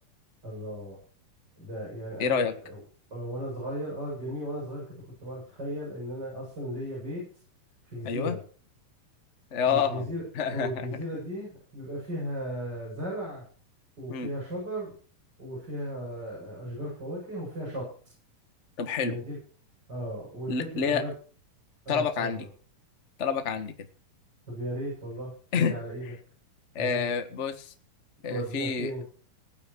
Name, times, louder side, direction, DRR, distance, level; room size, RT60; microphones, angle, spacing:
voice 1, 0.4-1.0 1.6-2.8 3.1-4.8 5.2-7.2 7.8-8.4 9.6-10.2 10.5-13.4 14.0-14.9 15.4-17.9 19.0-19.4 19.9-21.1 21.8-22.5 24.5-26.1 26.8-27.1 28.3-29.0, equal, 30° right, -5 dB, 8.3 m, -36 dB
voice 2, 2.2-2.5 8.0-8.4 9.5-10.0 10.3-10.9 14.1-14.3 18.8-19.2 20.5-21.0 21.9-22.4 23.2-23.7 25.5-25.7 26.7-27.7 28.2-28.9, left 6 dB, 35° left, 8 dB, 1.2 m, -28 dB
19.5 x 9.6 x 4.7 m, 0.41 s
omnidirectional pair, 3.7 m